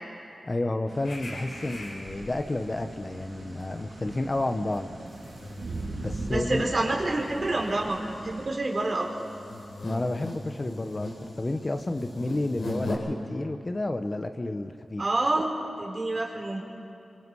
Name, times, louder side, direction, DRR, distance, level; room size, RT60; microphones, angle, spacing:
voice 1, 0.4-4.9 5.9-6.6 9.8-15.0, left 2 dB, 35° left, 7 dB, 1.2 m, -31 dB
sound 1, 0.9-8.5, right 2 dB, 85° right, 3.6 m, -40 dB
sound 2, 1.0-2.6 3.0-3.2 3.5-12.9, left 2 dB, 90° left, 4.6 m, -41 dB
voice 2, 6.3-9.3 15.0-16.6, right 2 dB, 50° right, -1 dB, 4.3 m, -28 dB
27.0 x 25.5 x 4.9 m, 2.6 s
cardioid pair, 50°, 0 cm